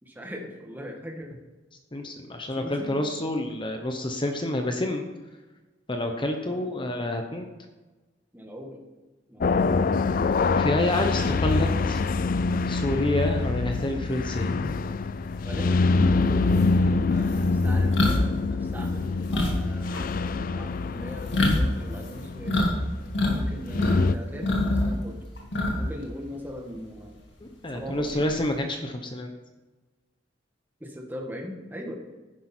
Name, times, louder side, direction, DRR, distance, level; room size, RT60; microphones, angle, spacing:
voice 1, 0.0-1.4 2.5-3.0 6.5-6.7 8.3-8.8 9.3-9.7 15.4-20.0 20.3-22.6 23.3-25.2 25.8-27.2 27.7-28.3 30.8-31.9, equal, 10° right, 1 dB, 1.6 m, -40 dB
voice 2, 1.9-5.1 5.9-7.5 10.5-12.0 12.7-14.7 27.4-29.3, left 1 dB, 25° left, 4 dB, 0.9 m, -28 dB
sound 1, 9.4-24.1, left 3 dB, 50° left, 0.4 m, -25 dB
sound 2, 16.0-16.1 16.5-22.7 23.0-24.0 24.3-26.0 26.3-26.5 27.9-28.5, left 1 dB, 70° left, 2.4 m, -26 dB
11.0 x 10.0 x 4.4 m, 1.2 s
head